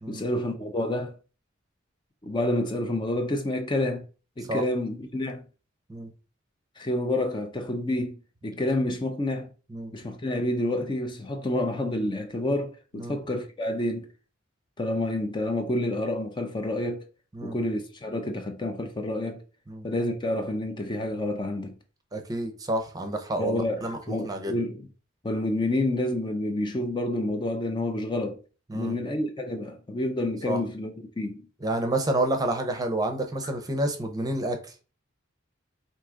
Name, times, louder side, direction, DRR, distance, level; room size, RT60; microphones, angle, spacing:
voice 1, 0.1-1.2 2.2-4.1 4.4-5.4 6.8-8.1 8.4-9.5 9.9-14.1 14.8-17.1 17.4-19.4 19.8-21.8 23.4-24.8 25.2-28.4 28.7-31.4, left 1 dB, 25° left, 0.5 m, -29 dB
voice 2, 22.1-24.5 28.7-29.0 30.5-30.6 31.6-34.7, right 1 dB, 20° right, 0.7 m, -29 dB
4.7 x 2.8 x 3.6 m
head